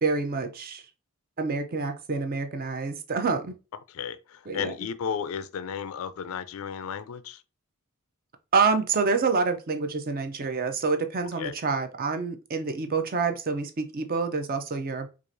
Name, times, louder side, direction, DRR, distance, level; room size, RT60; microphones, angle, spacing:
voice 1, 0.0-0.8 1.4-3.6 4.5-4.7 8.5-15.1, right 4 dB, 40° right, 0.5 m, -27 dB
voice 2, 3.9-7.4 11.4-11.5, left 7 dB, 70° left, 0.3 m, -34 dB
4.6 x 2.5 x 2.5 m
head